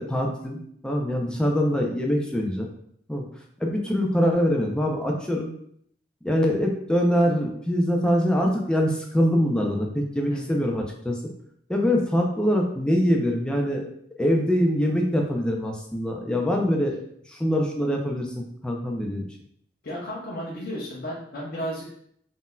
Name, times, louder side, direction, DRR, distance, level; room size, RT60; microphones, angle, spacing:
voice 1, 0.0-2.7 3.1-3.2 3.6-5.5 6.2-11.2 11.7-13.9 14.2-17.0 17.3-19.2, equal, 5° left, 0 dB, 0.4 m, -24 dB
voice 2, 19.8-21.9, equal, 60° left, -5 dB, 0.7 m, -33 dB
3.8 x 2.6 x 2.2 m, 0.67 s
head